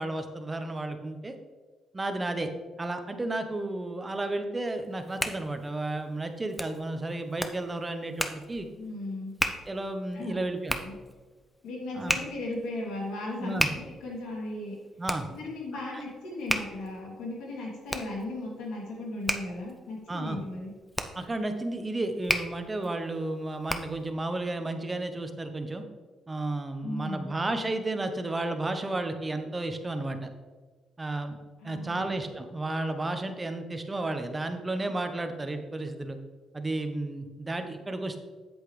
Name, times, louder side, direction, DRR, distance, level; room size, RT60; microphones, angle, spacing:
voice 1, 0.0-1.4 1.9-2.5 2.8-8.7 9.7-10.8 11.9-12.2 13.4-13.7 15.0-15.3 20.1-20.4 21.1-25.8 26.3-30.3 31.0-31.4 31.6-36.2 36.5-38.2, right 2 dB, 20° right, 7 dB, 0.9 m, -32 dB
Hands, 4.8-24.1, left 1 dB, 10° left, 0.7 m, -35 dB
voice 2, 8.8-9.3 10.1-10.4 10.8-11.0 11.6-14.8 15.3-20.7 26.8-27.3 31.6-32.2, left 2 dB, 90° left, -3 dB, 2.7 m, -36 dB
8.1 x 8.1 x 3.3 m, 1.4 s
cardioid pair, 90°, 0 cm